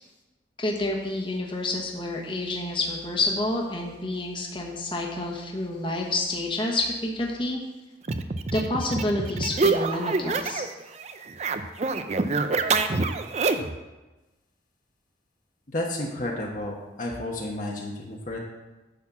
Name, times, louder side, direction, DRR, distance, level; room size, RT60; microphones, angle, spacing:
voice 1, 0.6-7.6 8.5-10.6, left 2 dB, 25° left, -1 dB, 1.2 m, -28 dB
sound 1, 8.0-10.7 11.0-13.8, right 3 dB, 35° right, 0.5 m, -26 dB
voice 2, 15.7-18.4, left 1 dB, 45° left, -1 dB, 1.1 m, -31 dB
10.0 x 4.2 x 7.2 m, 1.1 s
head